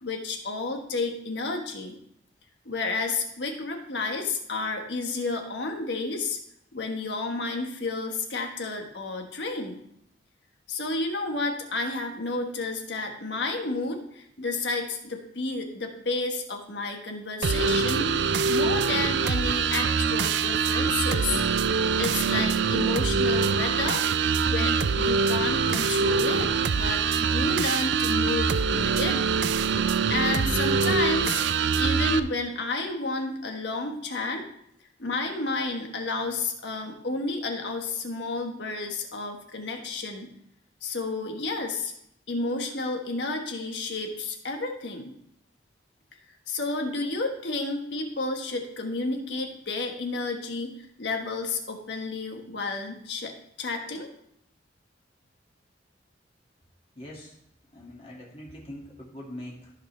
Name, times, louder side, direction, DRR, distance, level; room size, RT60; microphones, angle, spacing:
voice 1, 0.0-2.0 2.6-6.4 6.7-9.8 10.7-18.2 18.5-21.4 22.0-24.0 24.5-29.3 30.1-31.4 31.8-34.4 35.0-40.3 40.8-41.9 42.3-45.1 46.5-53.3 53.6-54.1, left 3 dB, 75° left, 3 dB, 1.5 m, -31 dB
sound 1, 17.4-32.2, right 5 dB, 75° right, 0.4 m, -24 dB
voice 2, 56.9-57.4 57.7-59.7, left 1 dB, 30° left, -4 dB, 2.2 m, -42 dB
14.5 x 5.3 x 3.3 m, 0.74 s
head